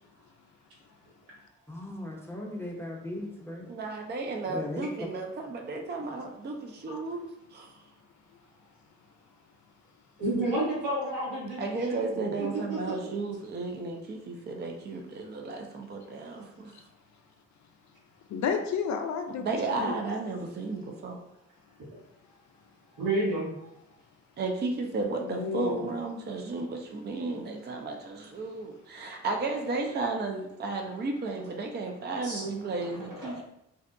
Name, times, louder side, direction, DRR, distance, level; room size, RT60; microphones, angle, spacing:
voice 1, 1.7-3.7 4.5-4.9, left 1 dB, 5° left, -1 dB, 0.7 m, -37 dB
voice 2, 3.7-7.7 11.6-16.7 19.4-21.2 24.4-33.4, right 3 dB, 30° right, 2 dB, 0.5 m, -33 dB
voice 3, 10.2-12.8 22.9-23.7 32.2-32.7 33.2-33.3, right 2 dB, 80° right, -7 dB, 1.3 m, -31 dB
voice 4, 18.3-19.5 19.7-20.1 25.2-25.9 26.6-26.7 28.4-28.5, left 6 dB, 55° left, 5 dB, 0.4 m, -31 dB
2.6 x 2.1 x 2.5 m, 0.80 s
hypercardioid pair, 40°, 35 cm